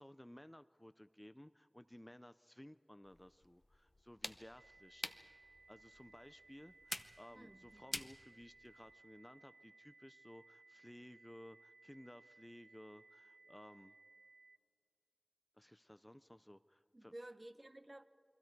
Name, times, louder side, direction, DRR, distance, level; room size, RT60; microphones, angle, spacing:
voice 1, 0.0-5.0 5.7-13.9 15.6-17.1, left 1 dB, 15° left, 0.4 m, -57 dB
sound 1, 3.0-8.9, left 1 dB, 35° left, 0.8 m, -50 dB
sound 2, 4.6-14.6, right 3 dB, 75° right, 0.4 m, -64 dB
voice 2, 7.3-7.8 16.9-18.0, right 1 dB, 30° right, 0.9 m, -54 dB
29.0 x 22.0 x 4.6 m
wide cardioid pair, 45°, 0 cm